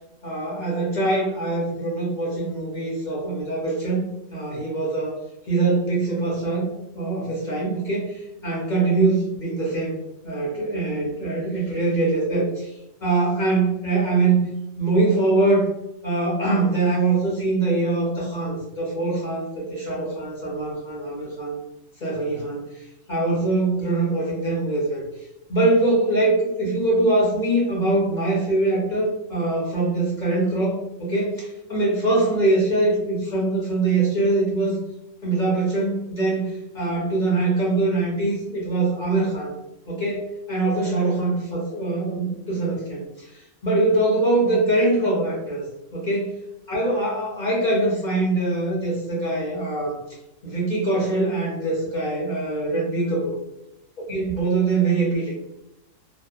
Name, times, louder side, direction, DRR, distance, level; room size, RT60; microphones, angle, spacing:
voice 1, 0.2-5.2 5.5-10.0 10.2-12.7 13.0-14.5 14.8-15.7 16.0-21.6 22.0-25.0 25.5-34.8 35.2-39.5 39.9-45.7 45.9-46.3 46.7-50.0 50.4-53.4 54.1-55.4, right 2 dB, 45° left, -5 dB, 0.6 m, -23 dB
2.8 x 2.0 x 2.3 m, 0.88 s
omnidirectional pair, 1.4 m